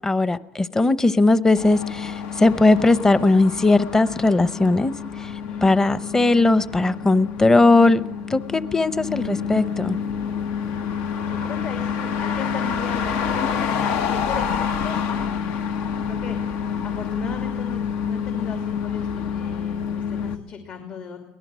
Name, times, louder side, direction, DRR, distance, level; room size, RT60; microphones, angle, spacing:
voice 1, 0.0-5.3 5.6-8.0 8.3-10.0, left 2 dB, 15° left, 15 dB, 0.8 m, -18 dB
sound 1, 1.6-20.4, left 7 dB, 80° left, 1.3 m, -28 dB
voice 2, 5.4-5.8 11.3-15.6 16.0-21.2, left 5 dB, 60° left, 4 dB, 2.8 m, -36 dB
23.5 x 18.5 x 6.2 m, 0.98 s
cardioid pair, 115°, 3 cm